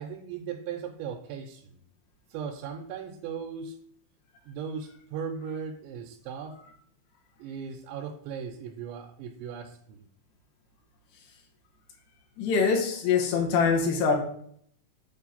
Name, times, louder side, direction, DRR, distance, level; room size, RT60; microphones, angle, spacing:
voice 1, 0.0-1.8 2.3-3.8 4.5-6.6 7.4-10.0, right 7 dB, 90° right, 2 dB, 2.8 m, -37 dB
voice 2, 12.4-14.2, left 5 dB, 80° left, 1 dB, 2.7 m, -24 dB
7.5 x 2.5 x 5.5 m, 0.65 s
omnidirectional pair, 5.0 m